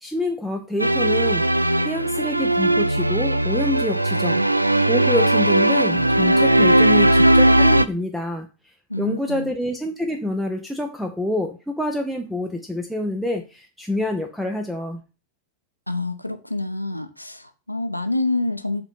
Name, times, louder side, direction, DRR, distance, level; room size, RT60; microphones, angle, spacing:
voice 1, 0.0-4.4 4.9-15.0, left 1 dB, ahead, 0.7 m, -27 dB
sound 1, 0.8-7.9, right 1 dB, 85° right, 0.3 m, -18 dB
voice 2, 8.9-9.5 15.9-18.8, left 2 dB, 90° left, 0.7 m, -27 dB
7.9 x 3.8 x 4.1 m
figure-of-eight pair, 90°, 0 cm